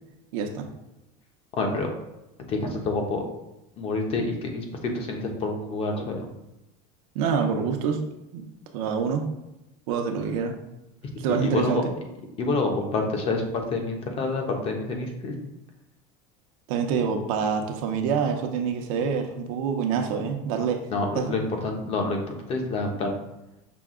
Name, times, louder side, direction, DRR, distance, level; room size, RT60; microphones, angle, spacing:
voice 1, 0.3-0.7 7.1-8.0 8.3-8.5 8.7-9.2 9.9-10.5 11.2-11.9 16.7-20.9 21.1-21.3, right 6 dB, 75° right, 4 dB, 0.8 m, -26 dB
voice 2, 1.6-1.9 2.5-3.2 3.8-6.3 11.4-11.8 12.4-15.4 20.9-22.2 22.5-23.1, left 3 dB, 35° left, 3 dB, 0.8 m, -27 dB
5.9 x 2.2 x 3.7 m, 0.94 s
cardioid pair, 155°, 18 cm